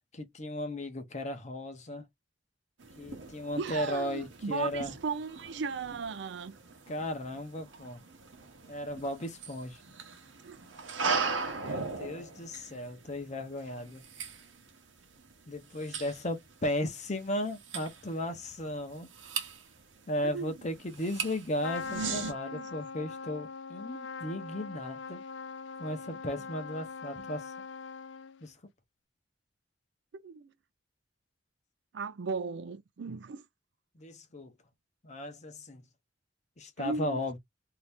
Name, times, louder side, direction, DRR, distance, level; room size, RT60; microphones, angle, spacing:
voice 1, 0.1-2.0 3.0-4.9 6.9-8.0 8.7-9.8 11.5-14.0 15.5-19.1 20.1-25.2 25.8-27.5 28.4-28.5 34.0-34.5 35.0-35.8 36.6-37.4, left 1 dB, 40° left, 0.8 m, -36 dB
sound 1, 2.8-22.3, right 5 dB, 85° right, 0.9 m, -39 dB
voice 2, 3.6-6.6 10.4-10.6 20.3-20.6 22.5-22.7 26.1-26.2 27.2-27.3 30.1-30.5 31.9-33.5 36.8-37.2, right 5 dB, 65° right, 0.4 m, -36 dB
Trumpet, 21.6-28.5, left 5 dB, 75° left, 0.4 m, -42 dB
2.8 x 2.4 x 3.3 m
head